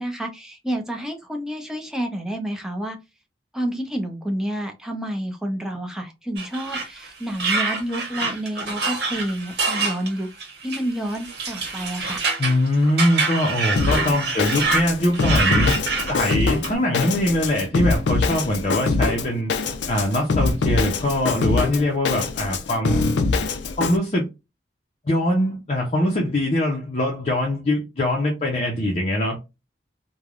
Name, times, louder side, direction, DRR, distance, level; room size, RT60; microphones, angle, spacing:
voice 1, 0.0-3.0 3.5-10.3 10.6-12.2, right 1 dB, 5° right, 0.6 m, -29 dB
sound 1, 6.4-14.8 15.1-16.7, right 3 dB, 60° right, 1.1 m, -26 dB
voice 2, 12.4-15.8 16.1-19.5 19.9-23.0 23.8-24.3 25.1-29.4, left 1 dB, 40° left, 0.7 m, -22 dB
Drum kit, 13.8-24.0, left 3 dB, 85° left, 0.5 m, -23 dB
3.2 x 2.2 x 2.4 m
head